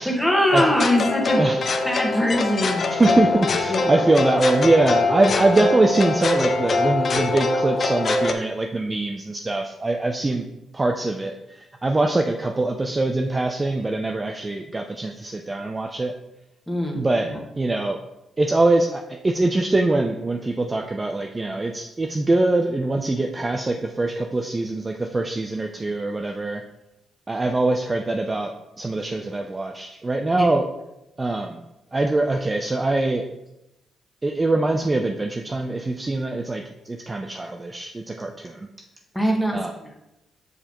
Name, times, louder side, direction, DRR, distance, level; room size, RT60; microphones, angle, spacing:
voice 1, 0.0-1.4 1.8-2.9 3.7-4.0 16.7-17.4 30.3-30.5 39.1-39.9, equal, ahead, -1 dB, 1.5 m, -22 dB
sound 1, 0.6-8.3, left 3 dB, 50° left, 0.7 m, -23 dB
voice 2, 2.9-10.4 10.7-16.1 16.9-17.3 17.6-18.0 18.4-26.6 27.3-30.7 31.2-31.6 31.9-33.2 34.2-38.7 39.5-39.7, right 2 dB, 25° right, 4 dB, 0.5 m, -23 dB
6.5 x 5.4 x 3.0 m, 0.90 s
cardioid pair, 75°, 0 cm